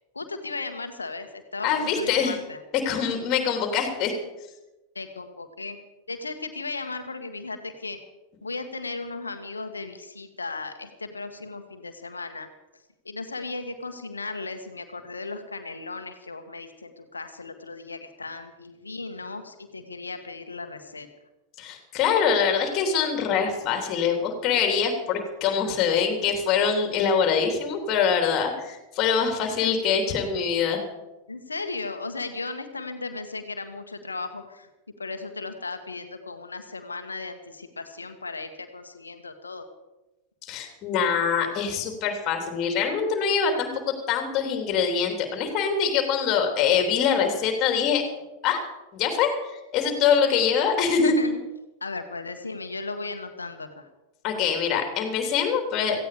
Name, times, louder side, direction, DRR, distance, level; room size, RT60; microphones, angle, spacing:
voice 1, 0.1-2.6 4.9-5.8 6.1-8.0 8.4-12.5 13.0-21.1 31.3-34.7 35.0-39.6 51.0-51.4 51.8-53.9, left 3 dB, 80° left, 8 dB, 1.6 m, -36 dB
voice 2, 1.6-2.4 2.8-4.1 21.6-30.8 40.4-48.0 48.4-48.6 48.9-51.1 54.2-56.0, left 6 dB, 35° left, 4 dB, 3.5 m, -24 dB
17.5 x 15.5 x 5.1 m, 1.0 s
figure-of-eight pair, 90°, 0 cm